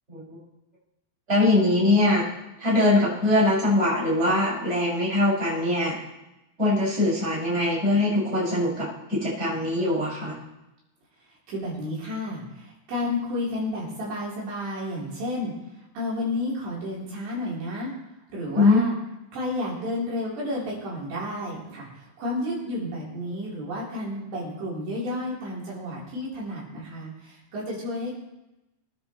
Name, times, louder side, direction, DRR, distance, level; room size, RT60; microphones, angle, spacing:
voice 1, 1.3-2.2 2.6-6.0 6.6-10.4 18.5-18.9, left 2 dB, 15° right, -7 dB, 6.5 m, -22 dB
voice 2, 11.5-15.5 15.9-17.9 18.3-18.9 19.3-28.1, left 1 dB, 65° right, -7 dB, 6.0 m, -31 dB
24.5 x 10.5 x 3.2 m, 0.95 s
omnidirectional pair, 5.3 m